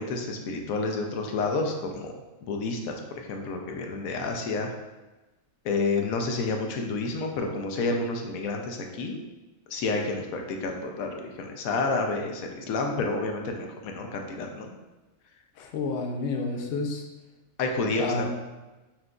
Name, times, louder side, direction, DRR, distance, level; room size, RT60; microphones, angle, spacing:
voice 1, 0.0-2.1 2.4-4.7 5.6-9.2 9.7-14.7 17.6-18.3, left 3 dB, 90° left, 3 dB, 1.0 m, -29 dB
voice 2, 15.6-17.0 18.0-18.3, left 3 dB, 65° left, 2 dB, 0.7 m, -30 dB
5.8 x 2.5 x 2.3 m, 1.1 s
omnidirectional pair, 1.4 m